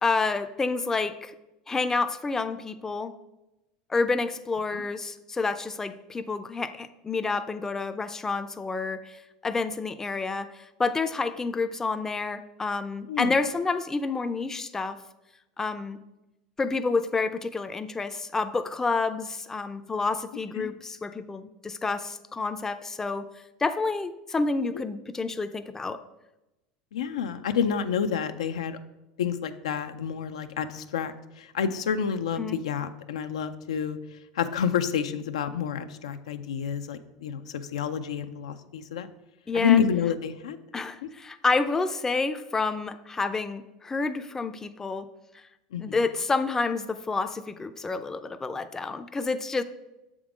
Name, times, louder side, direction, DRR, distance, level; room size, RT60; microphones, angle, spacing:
voice 1, 0.0-1.3 1.7-3.1 3.9-15.0 15.6-16.0 16.6-23.3 23.6-26.0 32.4-32.6 39.5-39.8 40.7-45.1 45.8-49.6, left 3 dB, 15° left, 10 dB, 0.4 m, -29 dB
voice 2, 26.9-28.8 29.2-34.0 34.4-39.1 39.5-40.6 41.0-41.1 45.7-46.0, left 7 dB, 90° left, 9 dB, 0.4 m, -28 dB
6.9 x 3.7 x 4.9 m, 0.97 s
supercardioid pair, 105°, 3 cm